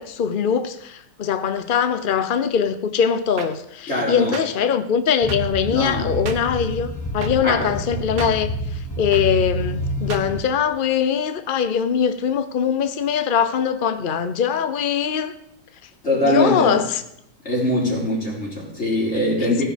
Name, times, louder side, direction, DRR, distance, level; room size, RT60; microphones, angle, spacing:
voice 1, 0.0-15.3 16.3-17.0 19.4-19.6, left 7 dB, 70° left, 10 dB, 0.4 m, -22 dB
sound 1, 3.4-3.5 4.3-4.5 5.3-5.4 6.3-6.4 7.2-7.3 8.2-8.3 9.1-9.2 10.1-10.2, right 6 dB, 65° right, 1.6 m, -32 dB
voice 2, 3.9-4.3 5.7-6.1 7.4-7.7 16.0-16.8 17.4-19.6, left 1 dB, 35° left, -3 dB, 4.3 m, -22 dB
sound 2, 5.2-10.4, equal, 10° left, 1.2 m, -28 dB
16.5 x 10.0 x 5.1 m, 0.78 s
omnidirectional pair, 2.0 m